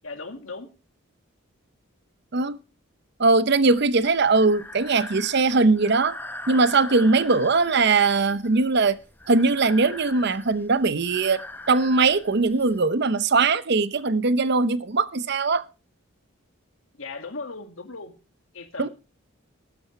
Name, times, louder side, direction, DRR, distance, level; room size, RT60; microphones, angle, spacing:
voice 1, 0.0-0.7 17.0-18.1 18.5-18.9, left 3 dB, 70° left, 2.0 m, -37 dB
voice 2, 3.2-6.1 6.5-9.0 9.3-15.6 18.8-18.9, right 3 dB, 50° right, 0.7 m, -20 dB
Breathing, 3.8-12.8, left 1 dB, 10° left, 0.8 m, -41 dB
15.0 x 12.5 x 3.2 m
head